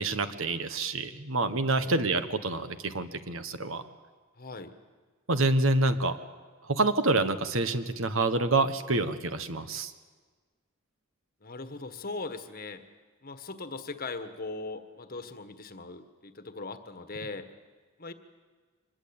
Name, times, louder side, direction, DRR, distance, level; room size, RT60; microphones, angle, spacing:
voice 1, 0.0-3.8 5.3-6.2 6.6-9.9, right 2 dB, 65° right, 10 dB, 1.4 m, -27 dB
voice 2, 4.4-4.7 11.4-12.8 13.2-17.5 18.0-18.1, left 3 dB, 40° left, 9 dB, 1.5 m, -39 dB
24.5 x 20.5 x 8.8 m, 1.4 s
head